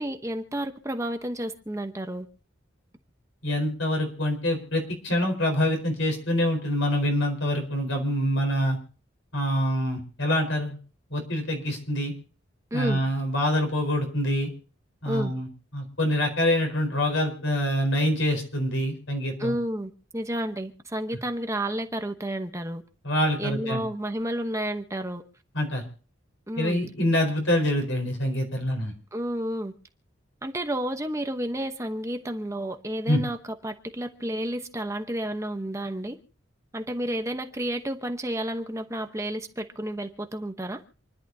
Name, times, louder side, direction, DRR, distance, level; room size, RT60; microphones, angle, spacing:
voice 1, 0.0-2.3 12.7-13.0 15.1-15.3 19.4-22.8 23.4-25.2 26.5-26.8 29.1-29.7 30.4-36.2 36.7-40.8, right 1 dB, 15° right, 0.9 m, -31 dB
voice 2, 3.4-8.8 9.3-10.8 11.1-12.1 12.7-14.5 15.0-15.5 15.7-19.5 23.0-23.8 25.5-25.8 26.6-28.9 33.1-33.2, left 1 dB, 75° left, 4.5 m, -25 dB
28.0 x 11.0 x 2.8 m
head